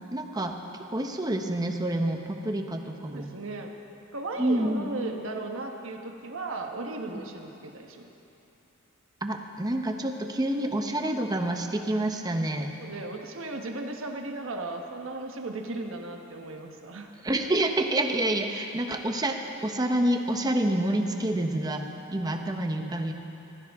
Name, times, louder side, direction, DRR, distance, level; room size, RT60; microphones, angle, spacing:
voice 1, 0.1-0.5 0.9-3.3 4.4-4.9 7.0-7.2 9.2-12.8 17.2-23.1, right 1 dB, 20° right, 4 dB, 0.9 m, -28 dB
voice 2, 3.1-3.8 4.1-8.1 12.8-17.1, right 2 dB, 70° right, 3 dB, 1.2 m, -36 dB
19.5 x 15.5 x 3.6 m, 2.9 s
head